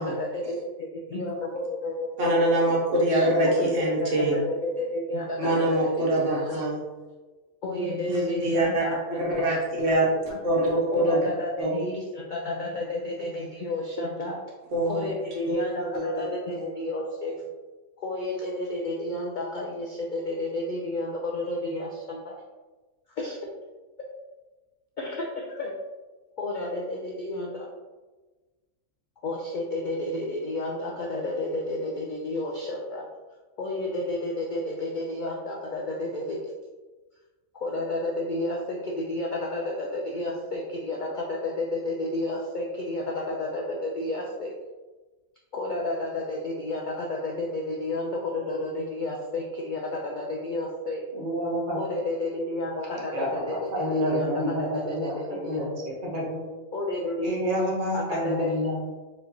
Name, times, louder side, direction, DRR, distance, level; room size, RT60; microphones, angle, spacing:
voice 1, 0.0-2.1 3.1-6.6 7.6-9.6 10.3-10.4 10.9-14.4 14.8-17.4 18.0-22.4 23.2-23.4 25.0-25.7 26.4-27.7 29.2-33.1 33.6-36.4 37.5-44.5 45.5-51.0 51.7-55.7 56.7-57.3 57.9-58.6, left 2 dB, 85° left, -2 dB, 0.4 m, -31 dB
voice 2, 2.2-4.3 5.4-6.8 8.0-8.9 9.2-10.2 10.4-11.2 11.6-11.7 14.7-15.0 15.5-16.7, right 1 dB, 65° right, -4 dB, 1.3 m, -24 dB
voice 3, 51.1-51.8 53.1-55.1 55.4-55.7 56.0-56.5 57.2-58.8, equal, 40° right, -3 dB, 1.0 m, -28 dB
4.6 x 3.1 x 2.6 m, 1.3 s
omnidirectional pair, 1.4 m